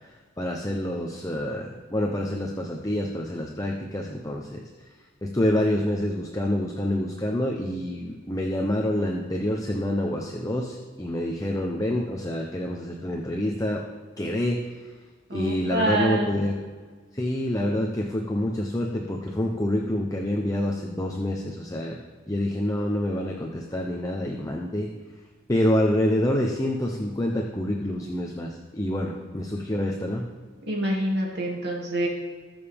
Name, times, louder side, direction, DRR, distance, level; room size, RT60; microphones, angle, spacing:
voice 1, 0.4-4.6 5.2-13.8 14.2-14.6 15.3-16.5 17.1-22.0 22.3-24.9 25.5-30.2, left 1 dB, 15° left, 0 dB, 0.9 m, -27 dB
voice 2, 15.3-16.3 30.7-32.1, right 1 dB, 55° right, -2 dB, 2.6 m, -26 dB
21.0 x 7.0 x 3.6 m, 1.5 s
head